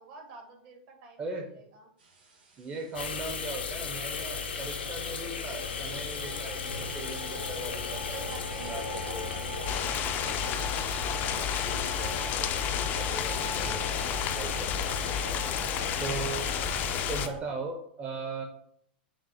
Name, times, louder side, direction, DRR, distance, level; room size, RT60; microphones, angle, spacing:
voice 1, 0.0-1.9 8.1-9.8 14.8-16.6, right 4 dB, 55° right, 2 dB, 1.3 m, -49 dB
sound 1, 2.0-17.4, right 3 dB, 70° right, 1.7 m, -44 dB
voice 2, 2.6-9.4 11.4-15.4 16.0-16.6 17.1-18.4, right 3 dB, 25° right, 1 dB, 0.6 m, -39 dB
sound 2, 2.9-17.3, left 5 dB, 90° left, 0.6 m, -36 dB
sound 3, 9.7-17.3, left 9 dB, 35° left, 0.3 m, -32 dB
5.9 x 2.0 x 4.1 m, 0.67 s
hypercardioid pair, 115°, 6 cm